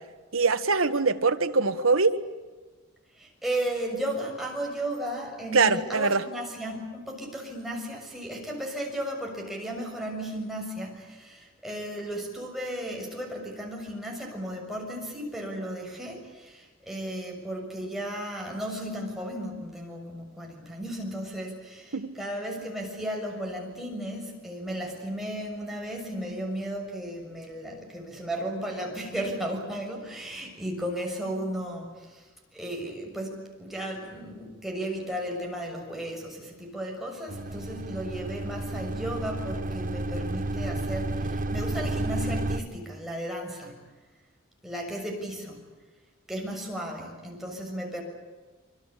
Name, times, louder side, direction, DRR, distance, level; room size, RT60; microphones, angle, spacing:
voice 1, 0.3-2.1 5.5-6.2 21.9-22.1, right 4 dB, 80° right, 8 dB, 1.7 m, -23 dB
voice 2, 3.2-32.3 32.5-43.8 44.6-45.6 46.3-48.0, right 1 dB, ahead, -1 dB, 6.7 m, -35 dB
sound 1, 37.3-42.6, right 2 dB, 40° right, 1.5 m, -31 dB
26.5 x 25.0 x 8.5 m, 1.3 s
head